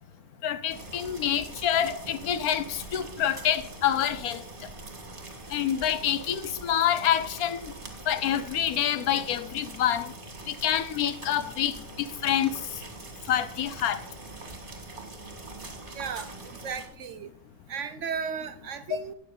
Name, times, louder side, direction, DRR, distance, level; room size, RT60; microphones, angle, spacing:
voice 1, 0.4-4.4 5.5-7.7 8.1-10.1 10.5-12.6 13.3-14.0, left 10 dB, 75° left, 1.2 m, -27 dB
sound 1, 0.7-16.9, right 3 dB, 35° right, 2.1 m, -43 dB
voice 2, 15.9-16.3 16.6-17.3 17.7-19.1, right 6 dB, 65° right, 0.8 m, -35 dB
12.5 x 8.8 x 3.9 m
omnidirectional pair, 1.6 m